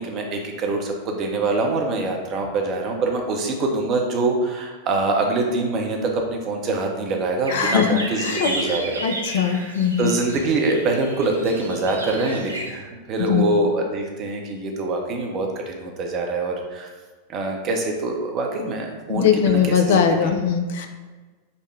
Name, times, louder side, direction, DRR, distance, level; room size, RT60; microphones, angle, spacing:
voice 1, 0.0-9.0 9.4-9.7 10.0-16.9 17.3-20.3, right 2 dB, 35° right, 2 dB, 0.6 m, -24 dB
voice 2, 7.5-8.5 9.0-10.1 13.3-13.4 19.1-20.9, left 7 dB, 55° left, 6 dB, 0.4 m, -20 dB
sound 1, 7.5-12.7, right 1 dB, 80° right, 0.5 m, -32 dB
5.2 x 2.1 x 3.2 m, 1.3 s
figure-of-eight pair, 90°, 0 cm